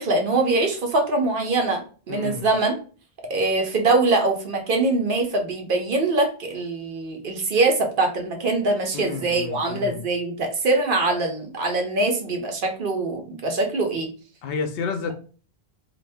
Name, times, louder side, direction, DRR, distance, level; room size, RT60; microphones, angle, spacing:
voice 1, 0.0-1.8 2.1-2.7 3.3-14.1, right 2 dB, 60° right, 0.9 m, -23 dB
voice 2, 2.1-2.5 8.9-10.0 14.4-15.1, left 5 dB, 70° left, 0.8 m, -30 dB
2.5 x 2.5 x 3.4 m
omnidirectional pair, 1.0 m